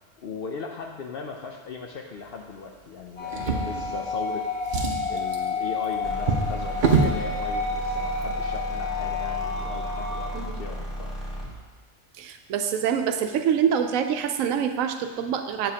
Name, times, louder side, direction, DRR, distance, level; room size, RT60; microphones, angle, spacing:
voice 1, 0.2-4.5 5.1-11.1, left 5 dB, 60° left, 2 dB, 0.6 m, -38 dB
sound 1, 3.2-10.3, left 4 dB, 30° left, 1.6 m, -30 dB
Drawer open or close, 3.3-4.3 4.6-7.2 8.1-8.2 8.6-8.7, right 4 dB, 45° right, 0.7 m, -26 dB
sound 2, 6.0-11.6, equal, ahead, 1.2 m, -34 dB
voice 2, 12.2-15.7, right 8 dB, 85° right, 7 dB, 1.0 m, -25 dB
7.5 x 6.9 x 2.8 m, 1.3 s
omnidirectional pair, 1.4 m